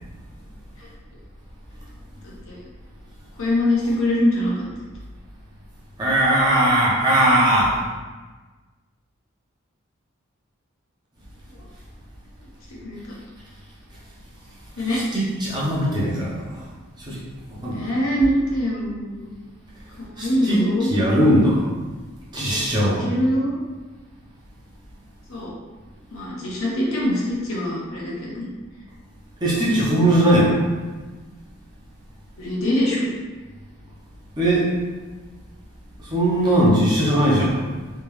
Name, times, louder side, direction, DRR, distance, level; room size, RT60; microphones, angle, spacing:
voice 1, 2.2-2.6 3.4-4.6 12.7-13.2 14.8-15.0 17.7-19.3 20.1-20.9 22.8-23.6 25.3-25.5 26.1-28.5 32.4-33.1, left 1 dB, 70° left, -5 dB, 1.0 m, -23 dB
voice 2, 6.0-7.8 14.8-16.6 17.1-17.2 17.6-17.9 20.2-20.6 20.9-21.6 22.3-23.0 29.4-30.6 34.4-34.7 36.0-37.6, right 1 dB, 20° right, -7 dB, 0.8 m, -19 dB
3.4 x 2.9 x 3.2 m, 1.3 s
head